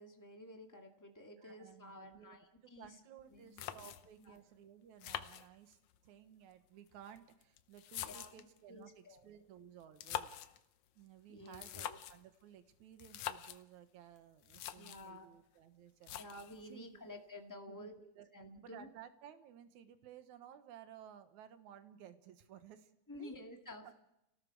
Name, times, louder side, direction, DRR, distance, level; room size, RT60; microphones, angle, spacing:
voice 1, 0.0-2.9 3.3-3.9 4.2-4.4 8.0-9.2 11.3-12.0 14.7-15.3 16.2-17.9 18.3-18.9 23.1-24.0, left 1 dB, 10° left, 2 dB, 1.2 m, -52 dB
voice 2, 1.4-10.3 11.0-16.3 16.7-17.1 17.7-18.3 18.6-23.4 23.8-24.0, right 9 dB, 65° right, 9 dB, 2.4 m, -57 dB
sound 1, 3.2-3.3 3.6-4.3 5.0-6.0 6.9-8.6 9.8-10.6 11.5-12.3 13.0-13.6 14.2-14.3 14.4-15.1 16.0-16.6, left 12 dB, 70° left, 1.8 m, -45 dB
30.0 x 18.0 x 4.8 m, 0.83 s
omnidirectional pair, 4.0 m